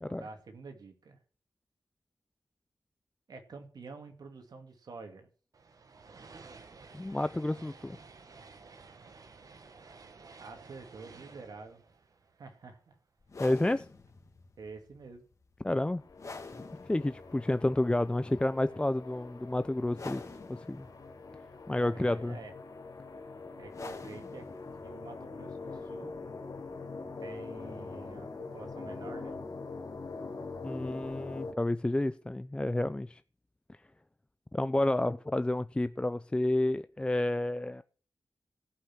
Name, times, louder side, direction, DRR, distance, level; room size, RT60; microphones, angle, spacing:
voice 1, 0.0-1.2 3.3-5.3 10.4-11.8 12.4-13.0 14.6-15.2 21.8-22.5 23.6-24.5 24.8-26.2 27.2-29.4, right 4 dB, 75° right, 2.4 m, -48 dB
sound 1, 5.5-13.0, right 4 dB, 60° right, 1.5 m, -53 dB
voice 2, 6.9-8.0 13.4-13.9 15.6-16.0 16.9-20.2 20.5-20.9 21.7-22.4 30.6-33.2 33.7-33.8 34.5-37.8, left 1 dB, 15° left, 0.4 m, -30 dB
sound 2, 13.2-28.5, left 3 dB, 50° left, 2.2 m, -50 dB
sound 3, 16.0-31.5, left 3 dB, 75° left, 3.6 m, -44 dB
16.5 x 5.7 x 6.2 m
wide cardioid pair, 95°, 7 cm